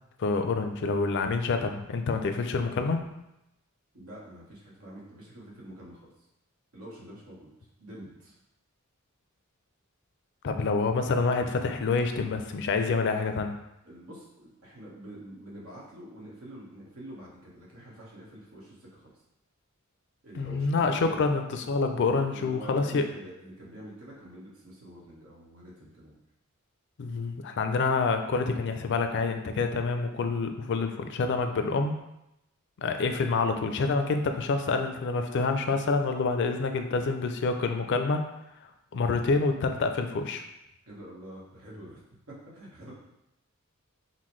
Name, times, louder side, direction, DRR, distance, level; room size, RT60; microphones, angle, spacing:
voice 1, 0.2-3.0 10.4-13.5 20.4-23.0 27.0-31.9 32.8-38.3 38.9-40.4, left 4 dB, 55° left, 6 dB, 0.4 m, -27 dB
voice 2, 3.9-6.1 6.7-7.5 7.8-8.4 13.8-19.1 20.2-21.2 22.3-26.2 40.9-42.0 42.3-42.9, right 1 dB, 85° right, -5 dB, 1.2 m, -46 dB
5.6 x 2.1 x 3.1 m, 0.88 s
head